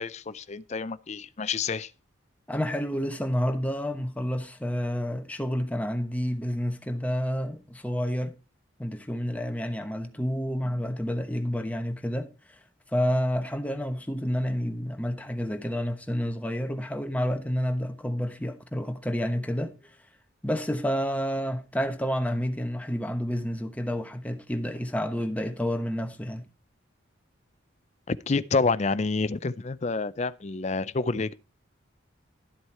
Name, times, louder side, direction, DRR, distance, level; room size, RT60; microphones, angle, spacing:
voice 1, 0.0-1.9 28.1-31.3, left 4 dB, 35° left, 0.5 m, -28 dB
voice 2, 2.5-8.3 8.8-12.6 12.9-20.0 20.4-26.4, equal, 5° left, 1.0 m, -29 dB
12.0 x 7.8 x 4.3 m
head